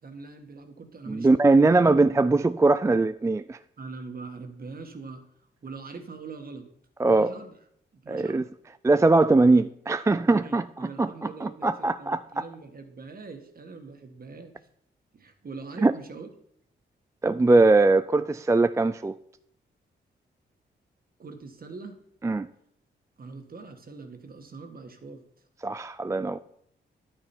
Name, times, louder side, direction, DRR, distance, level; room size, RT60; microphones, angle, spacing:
voice 1, 0.0-1.7 3.8-5.2 5.6-6.7 7.1-7.6 8.0-8.5 10.2-14.5 15.1-16.3 21.2-22.0 23.2-25.2, right 4 dB, 50° right, 1.7 m, -42 dB
voice 2, 1.1-3.6 7.0-7.3 8.1-8.4 8.8-12.4 15.8-15.9 17.2-19.2 22.2-22.5 25.6-26.4, right 3 dB, 15° right, 0.4 m, -21 dB
10.5 x 9.0 x 4.5 m
cardioid pair, 65°, 20 cm